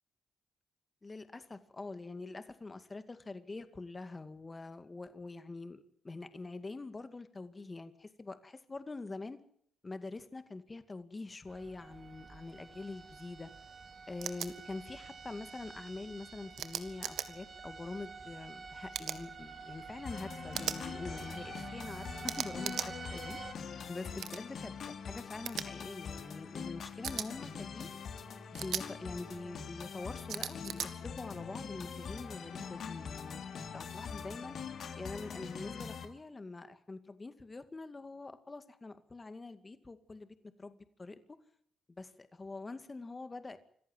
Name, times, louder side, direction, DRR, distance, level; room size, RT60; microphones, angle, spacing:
voice 1, 1.0-9.4 9.8-13.5 14.1-22.8 23.1-24.7 25.1-28.0 28.5-33.5 33.7-34.6 35.0-40.3 40.6-41.2 41.9-43.6, left 3 dB, 25° left, 11 dB, 2.2 m, -45 dB
sound 1, 11.5-23.5, right 5 dB, 45° right, 2.7 m, -49 dB
sound 2, 14.2-14.5 16.6-17.3 18.9-19.2 20.5-20.8 22.3-22.9 24.2-24.4 25.5-25.7 27.0-27.3 28.5-28.8 30.3-30.9, right 10 dB, 75° right, 1.8 m, -37 dB
sound 3, 20.1-36.1, left 6 dB, 65° left, 3.3 m, -43 dB
26.5 x 14.5 x 9.1 m, 0.67 s
cardioid pair, 75°, 0 cm